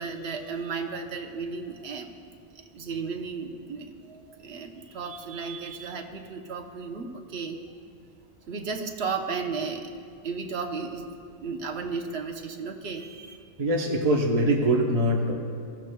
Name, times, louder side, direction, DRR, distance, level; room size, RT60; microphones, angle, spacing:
voice 1, 0.0-7.6 8.5-9.9 10.2-11.1 11.4-13.4, right 5 dB, 75° right, 3 dB, 1.2 m, -34 dB
voice 2, 13.6-15.3, right 1 dB, 35° right, 0 dB, 1.0 m, -23 dB
22.0 x 14.5 x 2.3 m, 2.2 s
omnidirectional pair, 1.1 m